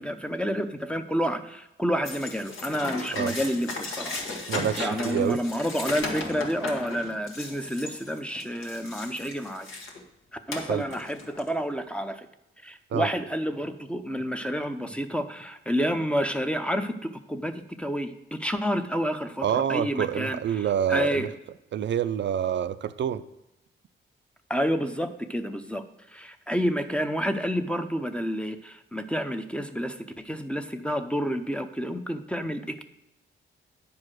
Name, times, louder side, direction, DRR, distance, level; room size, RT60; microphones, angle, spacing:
voice 1, 0.0-4.2 4.8-9.7 10.5-12.3 12.6-20.6 20.9-21.3 24.5-25.8 26.1-32.8, equal, 5° left, 8 dB, 0.6 m, -29 dB
sound 1, 2.1-10.0 10.5-11.5, left 3 dB, 75° left, 1.5 m, -36 dB
voice 2, 4.5-5.4 10.7-10.8 12.9-13.1 19.4-21.3 21.7-23.2, right 9 dB, 60° right, 11 dB, 0.4 m, -27 dB
9.6 x 4.7 x 6.2 m, 0.91 s
wide cardioid pair, 115°, 21 cm